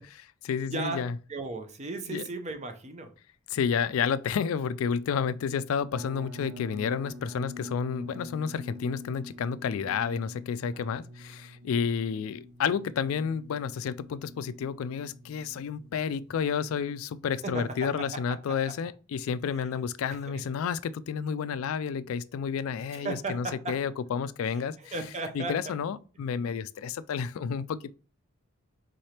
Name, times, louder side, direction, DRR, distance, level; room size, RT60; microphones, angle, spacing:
voice 1, 0.1-1.1 2.1-2.2 3.5-24.9 25.3-27.9, left 6 dB, 70° left, 0.3 m, -31 dB
voice 2, 0.6-1.0 1.3-3.1 10.7-10.9 17.4-18.6 19.5-19.7 20.1-20.4 22.9-23.8 24.4-25.7, right 3 dB, 30° right, 0.6 m, -36 dB
sound 1, 5.9-16.9, left 1 dB, 75° right, 0.6 m, -46 dB
3.8 x 3.2 x 4.3 m
head